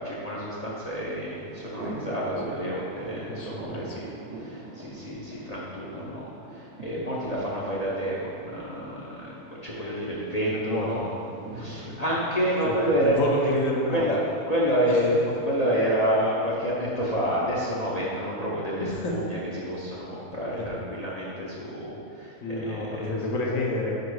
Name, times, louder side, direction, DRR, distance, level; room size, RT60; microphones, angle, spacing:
voice 1, 0.0-4.1 4.4-11.1 11.5-13.5 13.9-14.2 14.5-23.2, equal, 40° left, -7 dB, 0.6 m, -28 dB
Thunder, 0.9-17.9, right 3 dB, 60° right, 0.9 m, -44 dB
voice 2, 3.3-3.7 10.5-11.0 11.6-11.9 12.7-14.0 14.9-15.0 18.5-19.2 20.5-20.6 22.4-24.0, left 2 dB, 65° left, -1 dB, 1.1 m, -30 dB
4.8 x 4.8 x 4.7 m, 2.6 s
omnidirectional pair, 1.6 m